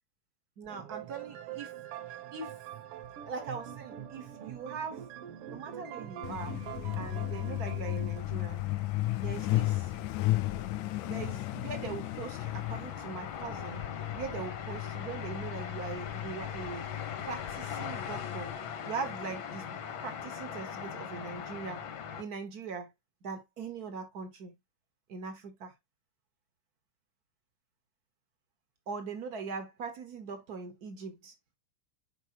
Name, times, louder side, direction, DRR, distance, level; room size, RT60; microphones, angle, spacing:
voice 1, 0.6-1.7 2.3-2.5 3.3-5.0 5.5-6.6 7.0-8.7 9.2-9.9 11.0-13.9 14.1-16.9 17.2-18.5 18.8-19.6 20.0-21.8 22.2-22.9 23.2-24.5 25.1-25.7 28.9-31.3, right 5 dB, 90° right, 0.8 m, -41 dB
sound 1, 0.7-8.2, right 10 dB, 75° right, 1.4 m, -44 dB
Truck, 6.2-18.5, left 17 dB, 80° left, 1.7 m, -35 dB
sound 2, 8.2-22.2, left 7 dB, 60° left, 1.3 m, -41 dB
9.8 x 4.5 x 2.9 m
omnidirectional pair, 3.6 m